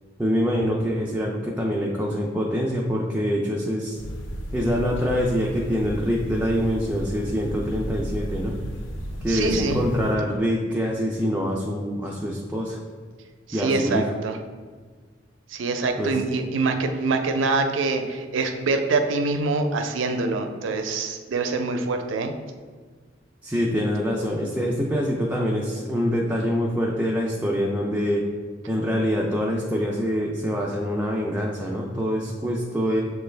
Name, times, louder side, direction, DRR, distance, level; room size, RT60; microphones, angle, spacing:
voice 1, 0.2-4.0 4.5-8.6 9.2-12.8 13.5-14.1 16.0-16.2 23.4-28.2 28.7-33.0, equal, 10° right, -3 dB, 0.4 m, -25 dB
sound 1, 4.0-10.2, equal, 80° left, 0.6 m, -34 dB
voice 2, 9.3-9.8 13.5-14.4 15.5-22.3, right 3 dB, 85° right, 6 dB, 0.5 m, -25 dB
6.8 x 2.3 x 3.2 m, 1.5 s
head